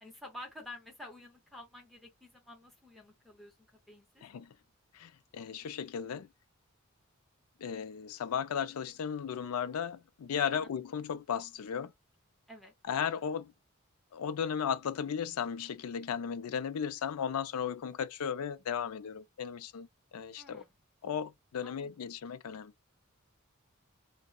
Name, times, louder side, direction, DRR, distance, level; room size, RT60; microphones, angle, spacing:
voice 1, 0.0-4.2 12.5-12.7 20.4-20.7 21.6-21.9, left 1 dB, ahead, 0.7 m, -50 dB
voice 2, 4.2-4.6 4.9-6.3 7.6-11.9 12.8-13.5 14.1-20.6 21.0-22.7, left 7 dB, 80° left, 0.4 m, -35 dB
3.6 x 2.1 x 2.2 m
head